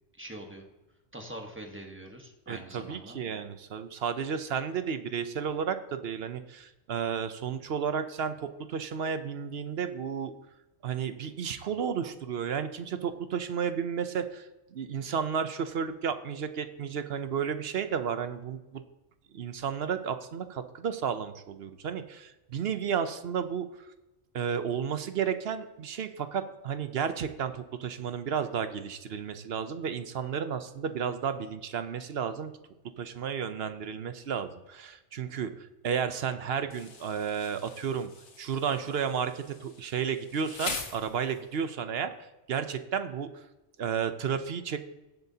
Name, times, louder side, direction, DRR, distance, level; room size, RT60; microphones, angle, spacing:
voice 1, 0.2-0.6 1.1-3.2, right 1 dB, 10° right, 3 dB, 1.2 m, -43 dB
voice 2, 2.5-10.3 10.8-18.8 19.3-23.7 24.3-32.5 33.0-35.5 35.8-38.1 38.4-42.1 42.5-43.4 43.8-44.8, right 7 dB, 60° right, 10 dB, 0.9 m, -32 dB
Insect, 36.7-41.7, left 4 dB, 65° left, 1.4 m, -42 dB
17.0 x 7.7 x 2.8 m, 1.0 s
omnidirectional pair, 1.3 m